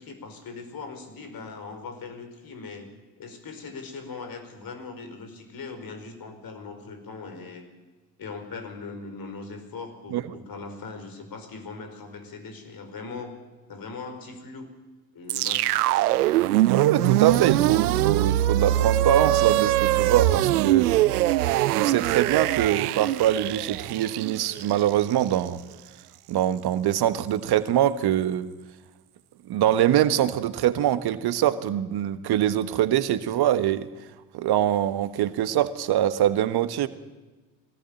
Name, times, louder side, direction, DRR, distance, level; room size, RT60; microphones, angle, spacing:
voice 1, 0.0-2.9 3.2-7.7 8.2-13.4 13.7-14.7 15.1-15.9, left 4 dB, 50° left, 8 dB, 5.2 m, -40 dB
sound 1, 15.3-25.5, right 14 dB, 85° right, 0.7 m, -23 dB
voice 2, 16.7-20.9 21.7-25.6 26.3-28.5 29.5-33.9 34.3-36.9, right 11 dB, 55° right, 13 dB, 1.5 m, -23 dB
23.5 x 18.0 x 9.0 m, 1.2 s
hypercardioid pair, 55°, 44 cm